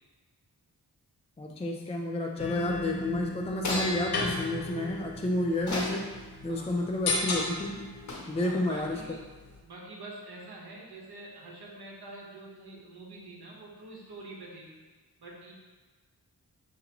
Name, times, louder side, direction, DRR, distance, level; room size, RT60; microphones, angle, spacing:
voice 1, 1.4-6.1 6.4-7.9 8.3-9.2, left 1 dB, 15° left, 1 dB, 0.4 m, -30 dB
sound 1, 2.4-9.6, left 2 dB, 80° left, 0.9 m, -35 dB
sound 2, 3.5-4.0 5.5-6.1 8.1-8.4, left 2 dB, 50° left, 1.1 m, -34 dB
voice 2, 6.5-6.9 8.4-9.2 9.6-14.7 15.2-15.5, right 2 dB, 80° right, -3 dB, 1.2 m, -46 dB
6.6 x 2.7 x 2.9 m, 1.3 s
cardioid pair, 65°, 38 cm